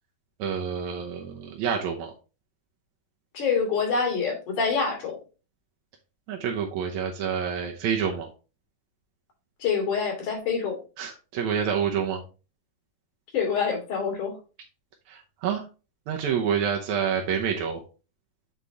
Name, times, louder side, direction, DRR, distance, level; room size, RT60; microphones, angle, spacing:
voice 1, 0.4-2.1 6.3-8.3 11.0-12.2 15.1-15.6 16.1-17.8, right 7 dB, 70° right, 0 dB, 1.9 m, -28 dB
voice 2, 3.3-5.2 9.6-10.8 13.3-14.3, left 5 dB, 60° left, -1 dB, 3.7 m, -26 dB
8.2 x 4.1 x 3.5 m, 0.33 s
omnidirectional pair, 4.2 m